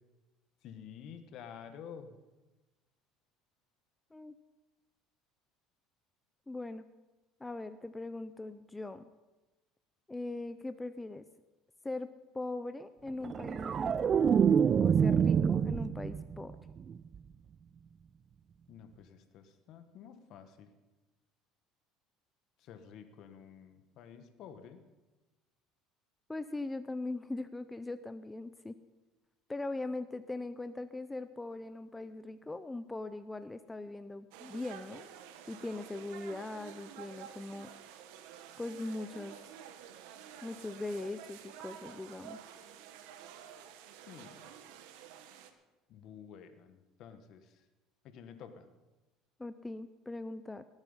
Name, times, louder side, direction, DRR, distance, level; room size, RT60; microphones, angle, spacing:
voice 1, 0.6-2.1 18.7-20.7 22.6-24.8 44.1-44.5 45.9-47.6 48.0-48.7, left 7 dB, 60° left, 9 dB, 1.4 m, -50 dB
voice 2, 6.5-6.9 7.4-9.1 10.1-11.2 11.8-12.1 12.3-14.2 14.8-16.6 26.3-28.8 29.5-35.1 35.5-37.7 38.6-39.4 40.4-42.4 49.4-50.6, left 2 dB, 10° left, 11 dB, 0.5 m, -40 dB
sound 1, 13.2-16.4 16.8-17.2, right 7 dB, 35° right, 0.5 m, -26 dB
sound 2, 34.3-45.5, right 9 dB, 80° right, 1.2 m, -50 dB
18.5 x 9.0 x 5.6 m, 1.1 s
supercardioid pair, 110°, 0 cm